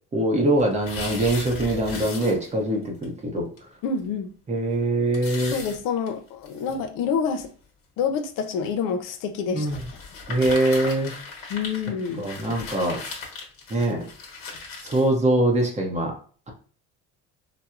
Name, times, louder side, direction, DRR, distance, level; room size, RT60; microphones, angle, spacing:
voice 1, 0.1-3.5 4.5-5.6 9.5-9.8 10.3-11.1 12.2-13.0 13.7-14.1 14.8-16.1, right 1 dB, 20° right, 1 dB, 0.7 m, -23 dB
sound 1, 0.6-2.7 3.0-3.1 3.6-3.7 4.0-4.1 5.1-6.7 7.4-7.5 8.4-8.7 9.7-15.1, left 4 dB, 45° left, 1.1 m, -37 dB
voice 2, 3.8-4.3 5.5-7.5 8.0-9.7 11.5-12.3, left 6 dB, 75° left, 7 dB, 0.6 m, -27 dB
4.2 x 2.0 x 2.4 m, 0.41 s
cardioid pair, 145°, 32 cm